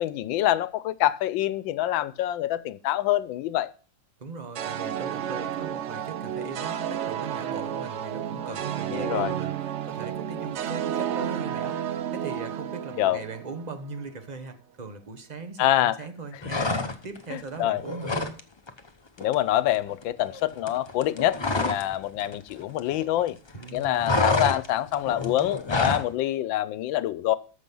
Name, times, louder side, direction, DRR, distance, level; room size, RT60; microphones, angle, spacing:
voice 1, 0.0-3.7 8.9-9.3 13.0-13.2 15.6-16.0 17.3-17.8 19.2-23.4 23.7-27.4, left 13 dB, 90° left, 1.4 m, -26 dB
voice 2, 4.2-18.4 23.5-24.4, right 4 dB, 25° right, 1.1 m, -39 dB
sound 1, 4.5-13.9, right 10 dB, 85° right, 0.6 m, -31 dB
sound 2, 16.4-17.2 17.6-18.4 18.7-18.9 19.2-21.9 22.2-23.3 23.5-26.1, left 3 dB, 40° left, 0.4 m, -28 dB
13.5 x 6.0 x 5.4 m
omnidirectional pair, 2.0 m